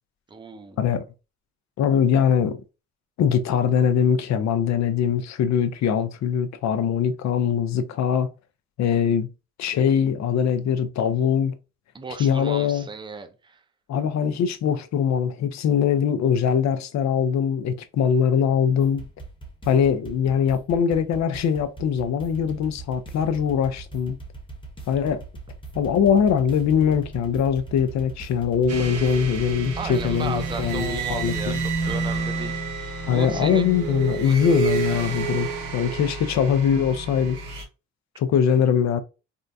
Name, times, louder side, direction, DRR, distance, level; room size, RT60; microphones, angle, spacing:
voice 1, 0.3-0.8 11.9-13.6 29.8-33.7 34.2-34.4, right 4 dB, 15° right, 0.5 m, -35 dB
voice 2, 1.8-2.6 3.2-8.3 8.8-9.3 9.6-11.5 12.2-12.9 13.9-19.1 19.7-24.2 24.9-25.2 25.8-31.6 33.1-37.4 38.2-39.0, left 7 dB, 65° left, 0.6 m, -22 dB
sound 1, 18.8-32.2, right 4 dB, 15° left, 0.9 m, -40 dB
sound 2, 28.7-37.6, right 4 dB, 85° right, 1.1 m, -30 dB
3.7 x 2.2 x 2.6 m
cardioid pair, 90°, 30 cm